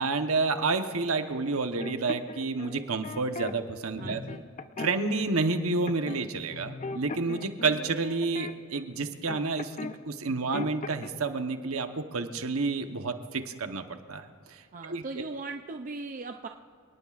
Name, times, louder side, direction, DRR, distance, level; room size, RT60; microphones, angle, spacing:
voice 1, 0.0-4.2 4.8-9.8 10.0-15.2, right 3 dB, 80° right, 7 dB, 1.1 m, -30 dB
sound 1, 1.8-3.5 4.0-5.2 5.9-6.2 6.5-10.0 10.2-11.1, left 3 dB, 35° left, 0.6 m, -39 dB
voice 2, 4.0-4.4 14.7-16.5, right 3 dB, 40° right, 4 dB, 0.5 m, -38 dB
27.5 x 19.0 x 2.5 m, 2.2 s
head